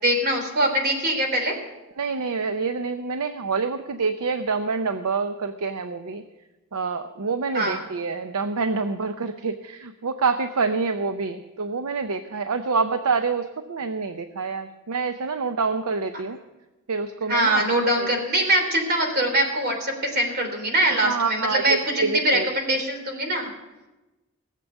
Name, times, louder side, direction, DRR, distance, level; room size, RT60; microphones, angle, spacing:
voice 1, 0.0-1.5 7.5-7.8 17.2-23.5, right 1 dB, 45° right, 3 dB, 3.3 m, -23 dB
voice 2, 2.0-6.2 6.7-16.4 16.9-17.6 18.0-18.1 21.0-22.5, right 4 dB, 85° right, 8 dB, 0.7 m, -27 dB
18.0 x 7.6 x 8.1 m, 1.1 s
head